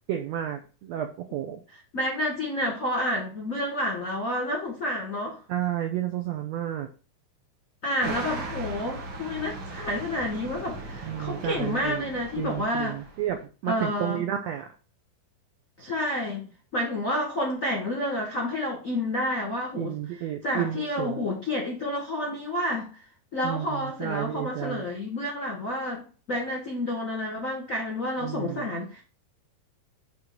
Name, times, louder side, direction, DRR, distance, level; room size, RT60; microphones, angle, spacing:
voice 1, 0.1-1.6 5.5-6.9 8.0-8.2 11.0-12.1 12.4-14.7 19.8-21.3 23.4-24.8 28.2-28.7, right 11 dB, 85° right, 1.5 m, -31 dB
voice 2, 1.9-5.4 7.8-13.0 13.7-14.2 15.8-19.9 20.4-22.9 23.3-26.0 26.3-29.0, left 1 dB, 45° left, 1.0 m, -29 dB
sound 1, 8.0-13.4, right 3 dB, 60° right, 1.0 m, -38 dB
7.3 x 3.2 x 6.1 m
omnidirectional pair, 3.8 m